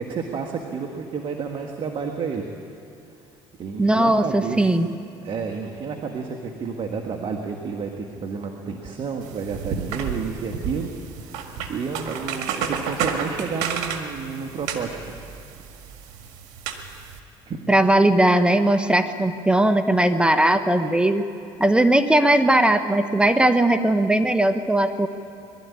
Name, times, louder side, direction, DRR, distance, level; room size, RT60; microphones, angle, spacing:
voice 1, 0.0-2.4 3.6-4.7 5.2-11.4 11.7-15.0 15.9-16.1 17.5-17.6, right 5 dB, 50° right, 3 dB, 1.7 m, -31 dB
voice 2, 3.8-4.9 17.7-21.2 21.6-25.1, right 1 dB, 10° right, 9 dB, 1.1 m, -19 dB
sound 1, 9.2-17.2, right 6 dB, 80° right, 1.8 m, -31 dB
22.0 x 13.0 x 9.7 m, 2.6 s
supercardioid pair, 80°, 11 cm